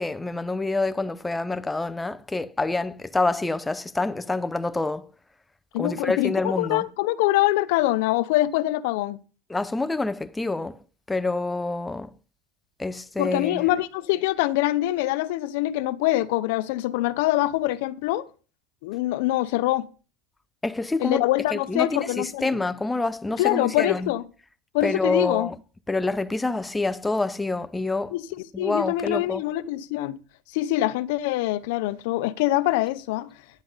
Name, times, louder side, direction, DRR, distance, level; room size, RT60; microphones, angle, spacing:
voice 1, 0.0-5.1 5.8-6.8 9.5-10.8 11.1-12.1 12.8-13.7 20.6-21.2 21.5-24.1 24.8-25.5 25.9-28.1 28.5-29.4, left 3 dB, 10° left, 0.6 m, -27 dB
voice 2, 5.7-9.2 13.2-18.3 18.8-19.9 21.0-22.6 23.4-24.2 24.7-25.5 28.1-30.2 30.5-33.3, left 16 dB, 75° left, 0.7 m, -24 dB
10.5 x 9.8 x 4.0 m
supercardioid pair, 140°, 0 cm